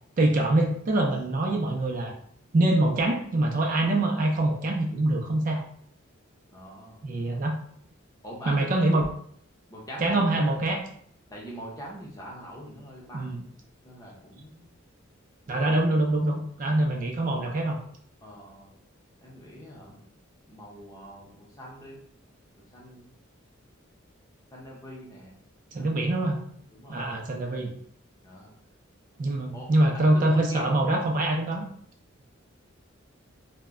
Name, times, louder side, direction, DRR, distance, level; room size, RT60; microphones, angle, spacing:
voice 1, 0.2-2.1 2.5-5.6 7.0-7.5 8.5-9.1 10.0-10.8 13.1-13.4 15.5-17.8 25.7-26.4 26.9-27.7 29.2-31.7, right 1 dB, 40° right, 1 dB, 0.3 m, -24 dB
voice 2, 6.5-7.1 8.2-8.9 9.7-10.6 11.3-13.5 13.8-14.7 16.7-17.0 18.2-18.7 19.2-20.0 20.5-22.0 22.5-23.1 24.5-25.3 25.7-26.1 26.7-27.1 28.2-28.5 29.5-30.8, equal, 20° left, -4 dB, 0.6 m, -43 dB
2.1 x 2.1 x 3.5 m, 0.62 s
head